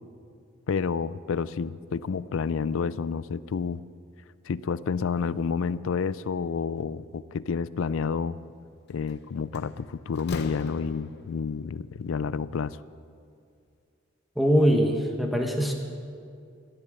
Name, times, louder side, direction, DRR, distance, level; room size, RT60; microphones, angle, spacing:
voice 1, 0.7-3.8 4.5-8.4 8.9-12.8, left 5 dB, 70° left, 17 dB, 0.4 m, -29 dB
Slam, 8.9-9.1 9.5-11.4, left 3 dB, 55° left, 0.8 m, -39 dB
voice 2, 14.4-15.7, equal, ahead, 2 dB, 1.1 m, -22 dB
14.0 x 9.8 x 7.7 m, 2.4 s
head